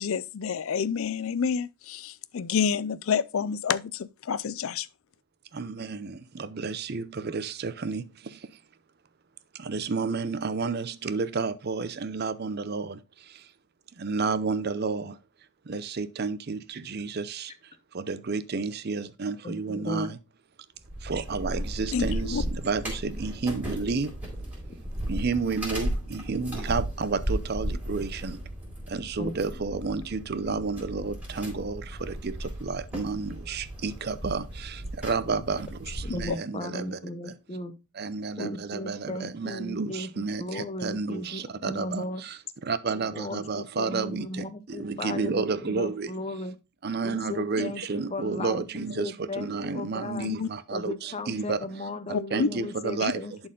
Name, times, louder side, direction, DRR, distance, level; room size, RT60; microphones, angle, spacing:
voice 1, 0.0-4.9 21.9-22.4 36.3-36.4 50.1-50.5 52.1-52.5 53.0-53.1, left 6 dB, 70° left, 0.4 m, -28 dB
voice 2, 5.5-8.6 9.5-13.5 13.9-15.2 15.7-20.2 21.0-24.2 25.1-28.4 28.9-37.3 38.0-46.1 46.8-51.6 52.3-53.2, right 4 dB, 45° right, 0.6 m, -31 dB
voice 3, 19.4-20.1 22.4-22.5 29.2-29.3 36.0-37.7 38.4-42.2 42.9-46.5 47.0-50.3 50.7-53.5, left 2 dB, 30° left, 0.7 m, -36 dB
sound 1, 20.8-36.3, equal, 10° right, 3.7 m, -35 dB
11.0 x 4.4 x 3.8 m
head